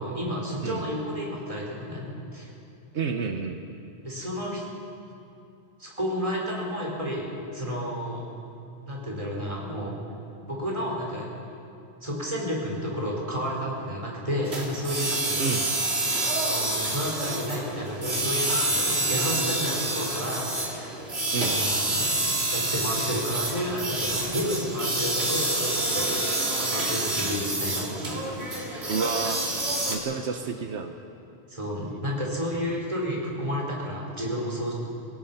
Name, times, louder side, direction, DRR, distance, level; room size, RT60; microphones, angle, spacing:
voice 1, 0.0-2.1 2.3-2.5 4.0-4.7 5.8-8.2 8.9-9.9 10.5-11.3 12.0-15.5 16.3-21.0 21.4-22.1 22.5-26.1 26.6-28.2 28.6-28.9 31.5-34.7, equal, 30° right, -3 dB, 4.9 m, -31 dB
voice 2, 2.9-3.6 15.4-15.7 21.3-21.6 28.9-29.4 29.9-30.9 31.8-32.0, right 5 dB, 85° right, 6 dB, 1.2 m, -30 dB
sound 1, 14.5-30.0, right 2 dB, 70° right, 2.8 m, -28 dB
26.5 x 17.5 x 5.8 m, 2.8 s
omnidirectional pair, 1.1 m